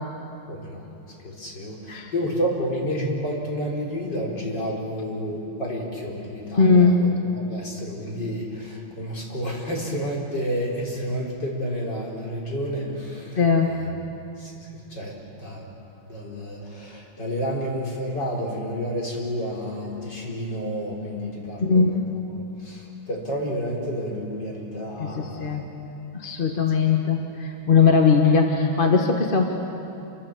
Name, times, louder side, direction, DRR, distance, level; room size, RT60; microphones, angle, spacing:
voice 1, 0.5-0.8 1.2-7.1 7.3-13.4 13.7-13.9 14.4-14.5 14.9-15.1 15.4-15.6 16.1-21.8 22.6-25.5, equal, 55° left, -2 dB, 5.0 m, -30 dB
voice 2, 6.5-7.2 13.4-13.7 21.6-22.1 25.0-25.7 26.1-29.5, left 5 dB, 25° left, 3 dB, 1.6 m, -19 dB
28.5 x 25.0 x 7.5 m, 2.7 s
omnidirectional pair, 2.3 m